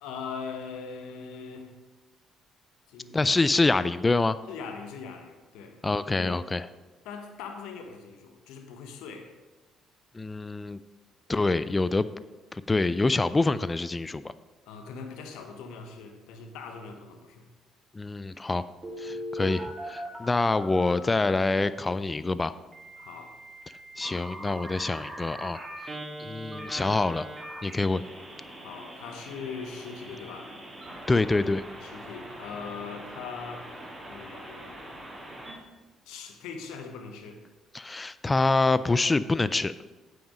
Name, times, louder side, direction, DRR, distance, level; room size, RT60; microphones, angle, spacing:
voice 1, 0.0-1.7 2.9-3.2 4.5-5.8 6.1-6.4 7.0-9.3 14.7-17.5 19.0-19.4 23.0-23.4 28.6-30.6 31.8-33.7 34.0-34.9 36.1-37.4, left 5 dB, 75° left, 5 dB, 1.1 m, -41 dB
voice 2, 3.1-4.4 5.8-6.7 10.1-10.8 11.3-12.1 12.5-14.3 17.9-18.7 19.0-22.5 24.0-25.6 26.2-27.3 27.6-28.0 31.1-31.6 37.7-39.7, left 3 dB, 25° left, 15 dB, 0.3 m, -26 dB
Telephone, 18.8-21.3 22.7-35.6, equal, 20° right, 2.6 m, -41 dB
8.8 x 5.7 x 5.1 m, 1.2 s
hypercardioid pair, 50°, 0 cm